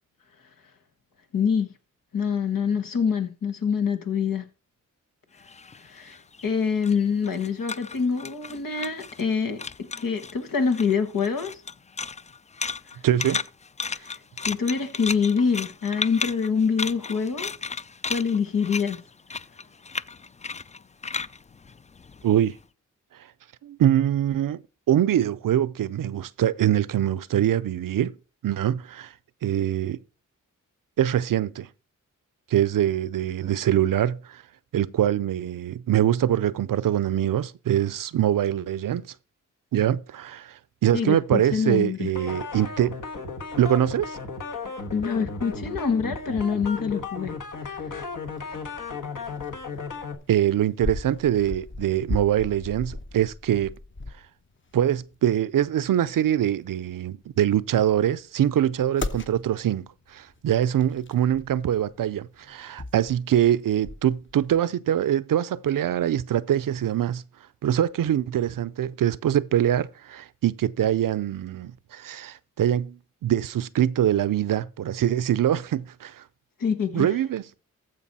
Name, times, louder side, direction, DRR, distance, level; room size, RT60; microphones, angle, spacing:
voice 1, 1.3-1.7 2.1-4.5 5.9-6.2 6.4-11.5 13.9-17.5 18.1-19.0 40.9-42.1 44.9-47.3 76.6-77.1, left 6 dB, 90° left, 1.4 m, -25 dB
sound 1, 5.4-9.3 9.6-10.4 10.7-22.5, left 5 dB, 20° left, 0.4 m, -34 dB
voice 2, 13.0-13.4 22.2-22.6 23.6-24.6 24.9-28.1 28.4-29.1 29.4-30.0 31.0-31.7 32.5-34.4 34.7-39.0 39.7-43.0 43.6-44.2 50.3-53.7 54.7-59.9 60.1-67.2 67.6-76.2 76.9-77.4, right 11 dB, 80° right, 0.6 m, -23 dB
sound 2, 42.1-50.1, left 4 dB, 70° left, 1.6 m, -35 dB
sound 3, 45.5-64.6, left 2 dB, 35° left, 1.0 m, -40 dB
14.0 x 5.2 x 4.1 m
cardioid pair, 45°, 32 cm